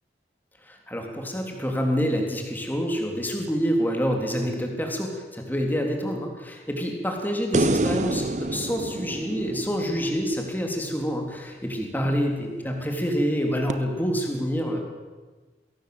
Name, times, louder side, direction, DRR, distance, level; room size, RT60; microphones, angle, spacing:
voice 1, 0.6-14.8, equal, 10° left, 2 dB, 3.5 m, -27 dB
sound 1, 7.5-10.9 13.7-13.8, right 2 dB, 45° right, 0.9 m, -27 dB
22.0 x 17.5 x 7.9 m, 1.3 s
head